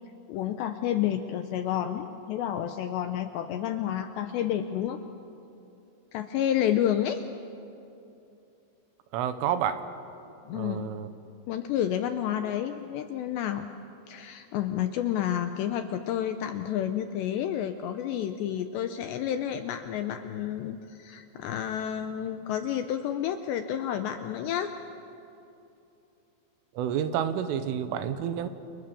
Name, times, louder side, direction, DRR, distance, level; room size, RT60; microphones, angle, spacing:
voice 1, 0.3-5.0 6.1-7.3 10.5-10.9 11.5-13.7 14.1-24.7, left 10 dB, 80° left, 8 dB, 2.6 m, -30 dB
voice 2, 9.1-9.8 10.5-11.1 26.8-28.5, right 9 dB, 80° right, 10 dB, 3.6 m, -29 dB
29.0 x 29.0 x 7.0 m, 2.8 s
omnidirectional pair, 5.9 m